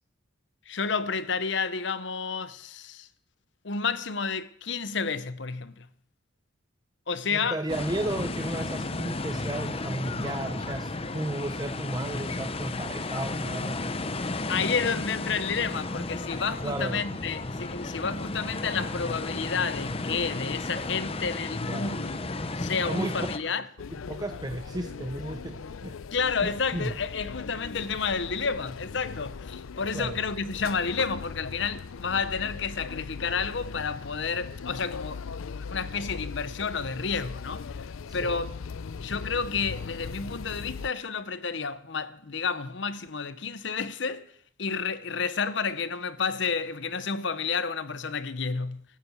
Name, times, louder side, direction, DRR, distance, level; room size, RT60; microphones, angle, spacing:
voice 1, 0.7-3.1 3.6-5.9 7.1-7.6 14.5-22.3 22.6-23.6 26.1-37.7 38.1-38.5 39.0-44.3 44.6-49.0, left 5 dB, 60° left, 0.8 m, -30 dB
voice 2, 7.3-13.9 16.6-17.0 21.7-22.1 22.8-23.2 23.4-23.6 24.1-25.9 26.4-26.9 29.9-30.2 38.1-38.4, right 1 dB, 20° right, 0.7 m, -34 dB
sound 1, 7.7-23.4, left 2 dB, 30° left, 0.7 m, -33 dB
sound 2, 23.8-40.9, left 5 dB, 85° left, 0.5 m, -39 dB
13.5 x 10.5 x 8.4 m
head